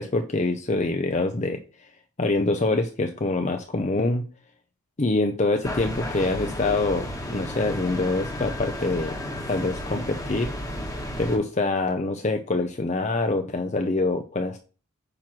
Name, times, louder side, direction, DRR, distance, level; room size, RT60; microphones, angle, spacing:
voice 1, 0.0-1.9 2.2-4.2 5.0-9.2 9.5-10.5 11.2-14.6, left 2 dB, 30° left, 5 dB, 0.6 m, -25 dB
sound 1, 5.6-11.4, left 1 dB, 15° left, 1.4 m, -33 dB
8.7 x 3.0 x 6.0 m, 0.37 s
head